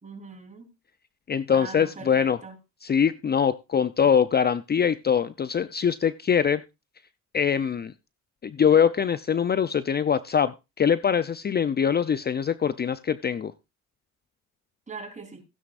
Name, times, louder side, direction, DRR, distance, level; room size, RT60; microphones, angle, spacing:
voice 1, 0.0-0.7 1.5-2.6 14.9-15.4, right 4 dB, 25° right, 4 dB, 3.8 m, -40 dB
voice 2, 1.3-2.4 2.8-6.6 7.3-7.9 8.4-13.5, left 7 dB, 35° left, 14 dB, 0.6 m, -23 dB
16.0 x 9.5 x 2.5 m, 0.25 s
cardioid pair, 90°, 30 cm